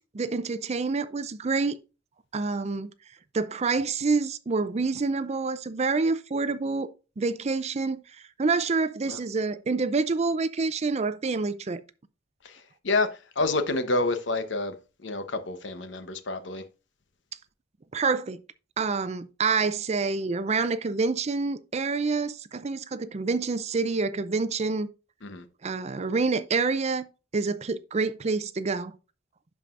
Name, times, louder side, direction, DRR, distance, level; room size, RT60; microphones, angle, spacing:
voice 1, 0.1-1.8 2.3-2.9 3.3-6.9 7.2-8.0 8.4-11.8 17.9-18.4 18.8-24.9 25.6-27.1 27.3-28.9, right 4 dB, 35° right, 0.5 m, -27 dB
voice 2, 13.4-14.7 15.0-16.6 25.2-25.4, left 2 dB, 70° left, 1.0 m, -28 dB
11.5 x 4.8 x 2.5 m
head